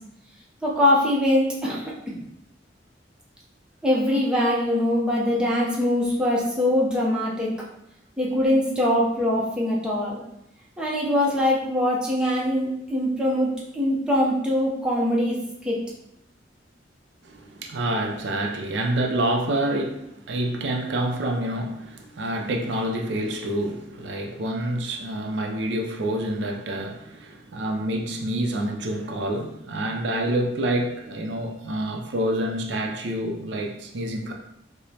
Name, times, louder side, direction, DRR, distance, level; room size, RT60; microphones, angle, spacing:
voice 1, 0.6-2.2 3.8-7.5 8.2-10.2 10.8-15.3 15.6-15.8, left 1 dB, 5° right, -5 dB, 0.6 m, -23 dB
voice 2, 17.2-34.3, right 1 dB, 70° right, 2 dB, 0.5 m, -27 dB
4.9 x 2.1 x 2.7 m, 0.80 s
head